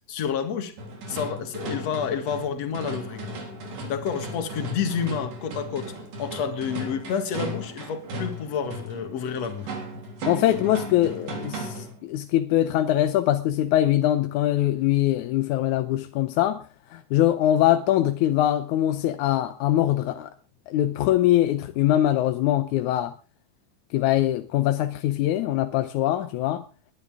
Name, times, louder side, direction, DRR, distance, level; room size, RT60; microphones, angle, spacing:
voice 1, 0.1-0.7 1.1-3.3 3.9-5.9 6.2-9.7, left 7 dB, 55° left, 2.8 m, -29 dB
sound 1, 0.8-12.0, right 1 dB, 80° right, 5.1 m, -36 dB
voice 2, 10.3-20.3 20.7-23.1 23.9-26.6, left 13 dB, 75° left, 2.1 m, -23 dB
21.5 x 11.0 x 3.6 m
omnidirectional pair, 3.8 m